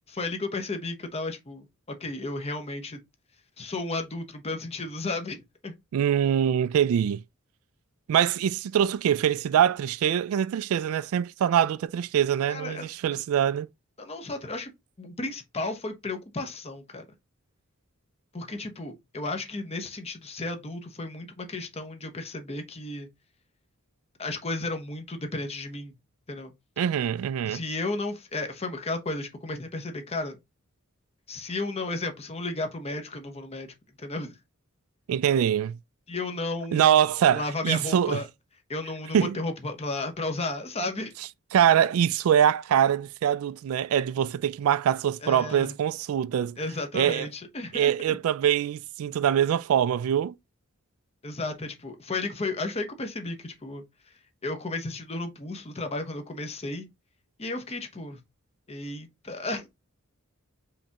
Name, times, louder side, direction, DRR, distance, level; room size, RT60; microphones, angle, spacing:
voice 1, 0.1-3.0 3.6-5.7 12.5-12.9 14.0-14.7 15.0-17.1 18.3-23.1 24.2-25.9 26.3-26.5 27.4-30.4 31.3-34.3 36.1-37.0 37.3-38.3 38.7-41.1 45.2-45.7 46.6-48.2 51.2-53.8 54.4-56.9 57.4-58.2 58.7-59.7, left 2 dB, 30° left, 0.9 m, -33 dB
voice 2, 5.9-7.2 8.1-13.7 26.8-27.6 35.1-35.8 36.7-38.2 39.1-39.4 41.5-46.6 46.9-47.3 47.7-50.3, right 9 dB, 80° right, 0.3 m, -23 dB
5.0 x 3.4 x 2.9 m
head